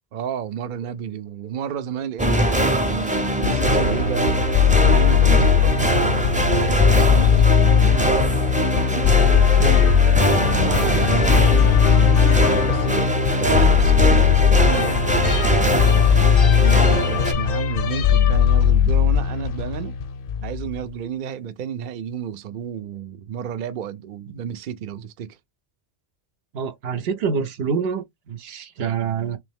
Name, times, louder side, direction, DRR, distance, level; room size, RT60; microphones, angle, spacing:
voice 1, 0.1-4.4 4.8-7.7 8.8-9.1 10.3-12.3 12.6-15.8 16.0-20.0 20.4-25.4, right 8 dB, 60° right, 0.6 m, -32 dB
sound 1, 2.2-17.3, right 1 dB, 10° right, 0.5 m, -22 dB
sound 2, 3.4-20.7, left 8 dB, 65° left, 0.7 m, -18 dB
voice 2, 9.4-9.7 26.5-29.4, right 6 dB, 80° right, 0.9 m, -26 dB
3.3 x 3.1 x 3.4 m
omnidirectional pair, 1.0 m